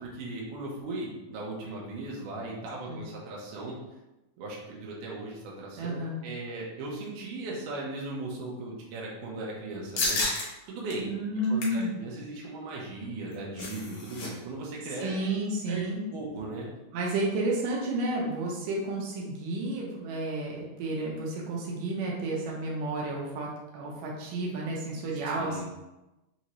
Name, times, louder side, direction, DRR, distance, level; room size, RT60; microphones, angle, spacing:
voice 1, 0.0-3.8 4.4-10.2 10.7-11.1 11.5-15.1 15.7-15.8 16.1-16.7 25.4-25.6, right 2 dB, 75° right, -3 dB, 2.3 m, -38 dB
voice 2, 5.8-6.2 11.0-11.9 15.0-16.0 16.9-23.5 23.7-25.6, right 2 dB, 90° right, -3 dB, 2.4 m, -31 dB
sound 1, 10.0-10.5 10.9-11.0 11.4-11.8 13.1-14.3 14.6-14.7 15.0-15.3, left 2 dB, 65° left, 1.9 m, -31 dB
5.4 x 2.7 x 3.0 m, 1.0 s
omnidirectional pair, 3.8 m